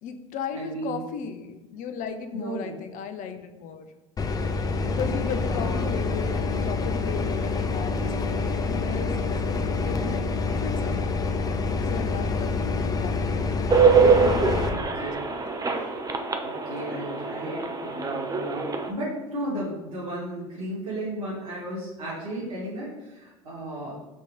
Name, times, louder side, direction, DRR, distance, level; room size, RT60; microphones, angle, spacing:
voice 1, 0.0-3.9 4.8-10.3 10.6-11.2 11.8-13.5 14.0-15.0 15.7-15.9, left 6 dB, 50° left, 8 dB, 0.8 m, -36 dB
voice 2, 0.5-1.3 2.3-2.7 5.4-6.0 14.7-15.2 16.4-23.9, right 1 dB, 85° right, -9 dB, 2.0 m, -34 dB
sound 1, 4.2-14.7, left 3 dB, 20° left, 0.6 m, -27 dB
sound 2, 13.7-18.9, right 5 dB, 20° right, 0.8 m, -23 dB
6.4 x 3.2 x 5.4 m, 1.1 s
hypercardioid pair, 75°, 17 cm